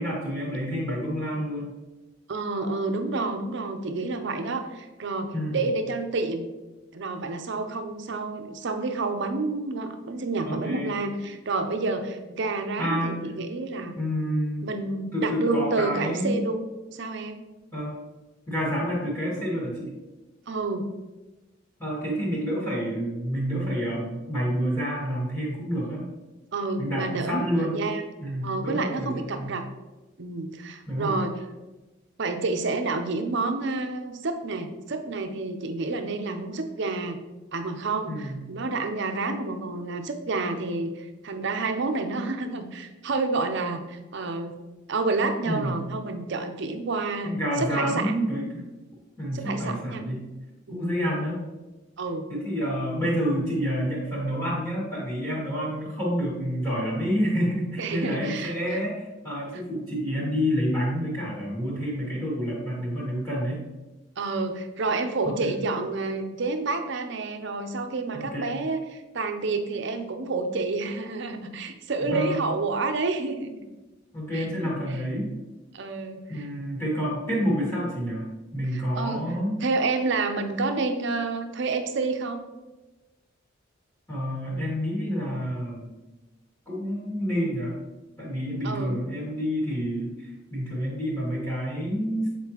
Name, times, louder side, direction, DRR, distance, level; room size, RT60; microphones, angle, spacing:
voice 1, 0.0-1.7 5.3-5.6 10.4-10.9 12.8-13.2 14.0-14.7 15.1-16.4 17.7-17.9 18.5-19.9 21.8-26.0 26.8-27.7 28.2-29.5 30.9-31.2 38.1-38.4 45.4-45.8 47.2-48.6 49.2-50.3 50.7-51.4 52.3-63.6 65.2-65.6 68.1-68.6 72.0-72.4 74.1-75.3 76.3-79.6 84.1-85.9 86.7-87.7 88.2-92.3, equal, 15° left, -6 dB, 1.9 m, -28 dB
voice 2, 2.3-6.5 6.9-13.9 14.6-16.6 16.9-17.4 20.5-20.9 26.5-28.0 28.4-29.7 30.2-31.3 32.2-37.2 37.5-44.6 44.9-48.1 49.3-50.0 50.7-50.9 52.0-52.3 57.8-58.8 64.2-73.5 74.3-75.0 75.7-76.5 78.7-79.3 79.6-82.5 88.6-89.0, right 3 dB, 60° right, 7 dB, 0.6 m, -29 dB
7.5 x 4.4 x 2.9 m, 1.1 s
head